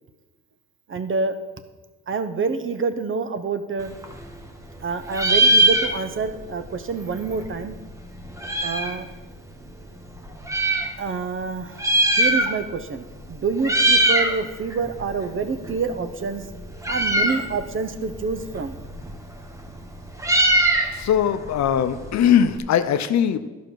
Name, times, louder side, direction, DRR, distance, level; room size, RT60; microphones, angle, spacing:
voice 1, 0.9-1.3 2.1-3.9 4.8-7.8 8.6-9.1 11.0-11.8 12.2-16.4 16.9-18.8, right 4 dB, 45° right, 10 dB, 0.9 m, -27 dB
Meow, 3.8-4.8 5.1-6.4 6.6-6.7 6.9-9.0 9.7-10.9 11.6-12.8 13.1-13.3 13.6-14.4 14.7-22.6, right 1 dB, 10° right, 1.2 m, -22 dB
voice 2, 20.9-23.5, left 9 dB, 65° left, 11 dB, 0.7 m, -20 dB
12.0 x 5.2 x 6.3 m, 1.2 s
cardioid pair, 90°, 30 cm